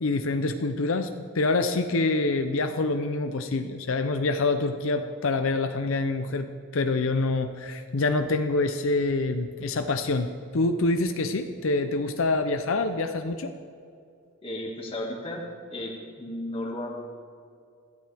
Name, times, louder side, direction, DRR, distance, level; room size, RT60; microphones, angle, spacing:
voice 1, 0.0-6.5 6.7-13.5, left 3 dB, 75° left, 7 dB, 0.6 m, -26 dB
voice 2, 14.4-15.5 15.7-16.9, left 1 dB, 25° left, 0 dB, 2.0 m, -34 dB
21.0 x 13.5 x 3.5 m, 2.4 s
head